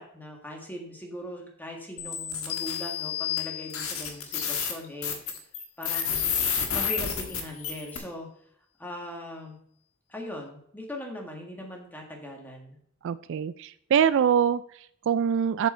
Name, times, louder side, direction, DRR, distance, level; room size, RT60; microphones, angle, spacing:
voice 1, 0.0-5.2 5.8-6.2 6.7-8.3 8.8-9.6 10.1-12.8, left 1 dB, 10° left, 0 dB, 1.8 m, -40 dB
sound 1, 2.0-2.8 3.4-3.5 3.7-8.0, left 7 dB, 75° left, 1.5 m, -30 dB
sound 2, 2.5-4.2, left 14 dB, 50° left, 0.6 m, -33 dB
voice 2, 13.0-15.7, right 8 dB, 60° right, 15 dB, 0.3 m, -24 dB
7.5 x 7.0 x 4.4 m, 0.68 s
head